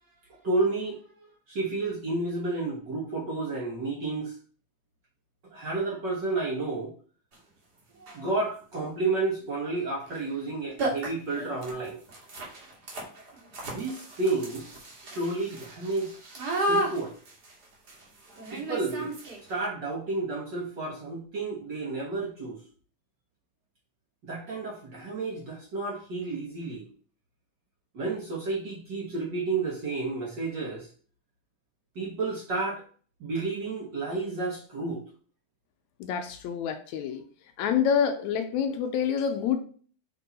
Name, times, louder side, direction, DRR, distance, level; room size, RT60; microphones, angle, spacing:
voice 1, 0.4-1.0 1.5-4.3 5.5-6.9 8.1-12.0 13.6-14.7 15.0-16.1 16.6-17.1 18.5-19.1 19.5-22.6 24.2-26.9 27.9-30.9 31.9-32.8 33.2-35.0, right 3 dB, 60° right, -3 dB, 1.2 m, -31 dB
sound 1, 7.3-7.4 8.0-8.3 10.0-10.2 10.5-10.6 10.8-19.6, right 1 dB, 40° right, 1.6 m, -34 dB
voice 2, 36.0-37.2 37.6-39.6, left 7 dB, 80° left, 7 dB, 1.8 m, -27 dB
5.3 x 4.5 x 4.0 m, 0.43 s
omnidirectional pair, 3.6 m